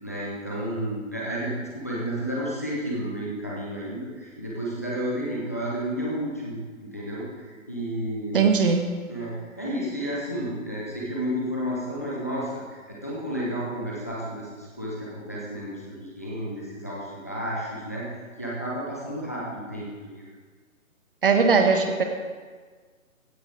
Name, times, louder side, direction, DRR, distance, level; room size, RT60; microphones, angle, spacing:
voice 1, 0.0-8.4 9.1-18.1 18.4-20.2, equal, 10° left, -6 dB, 0.7 m, -32 dB
voice 2, 8.3-8.9 21.2-22.0, right 5 dB, 40° right, 5 dB, 1.4 m, -19 dB
15.5 x 9.3 x 3.9 m, 1.5 s
hypercardioid pair, 165°, 42 cm